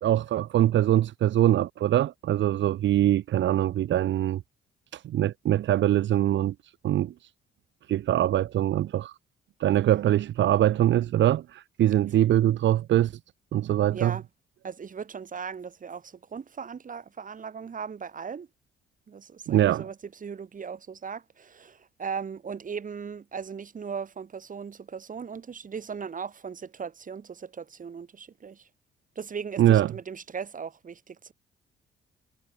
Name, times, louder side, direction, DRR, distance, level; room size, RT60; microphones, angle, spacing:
voice 1, 0.0-4.4 4.9-6.5 6.8-7.1 7.9-9.1 9.6-13.1 13.5-14.1 19.5-19.9 29.6-29.9, right 12 dB, 70° right, 1.0 m, -23 dB
voice 2, 13.9-14.2 14.6-18.5 19.1-28.7 29.2-31.3, right 6 dB, 40° right, 3.8 m, -38 dB
cardioid pair, 90°, 20 cm